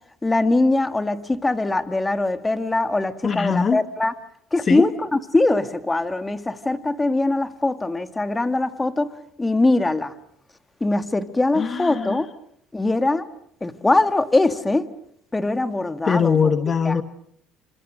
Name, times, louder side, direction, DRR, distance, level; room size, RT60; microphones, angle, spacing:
voice 1, 0.2-4.1 4.5-9.1 9.4-10.1 10.8-12.3 12.7-13.2 13.6-14.9 15.3-16.5 16.9-17.0, left 2 dB, 15° left, 8 dB, 1.9 m, -22 dB
voice 2, 3.2-3.8 4.7-4.9 11.6-12.2 16.1-17.0, left 6 dB, 35° left, 8 dB, 1.4 m, -21 dB
28.5 x 27.0 x 6.4 m, 0.72 s
cardioid pair, 105°, 0 cm